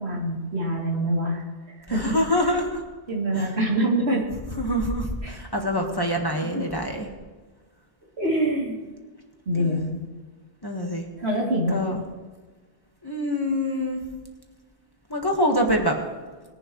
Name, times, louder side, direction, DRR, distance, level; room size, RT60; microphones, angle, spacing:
voice 1, 0.0-2.5 3.1-4.2 5.2-5.4 8.2-8.8 9.4-10.0 11.2-11.8, right 1 dB, 80° right, -3 dB, 3.3 m, -25 dB
voice 2, 1.9-2.8 3.3-3.5 4.6-7.1 9.6-9.8 10.6-11.0 11.7-12.0 13.0-14.0 15.1-15.9, equal, 20° left, 1 dB, 1.6 m, -25 dB
20.5 x 11.0 x 3.2 m, 1.4 s
omnidirectional pair, 1.1 m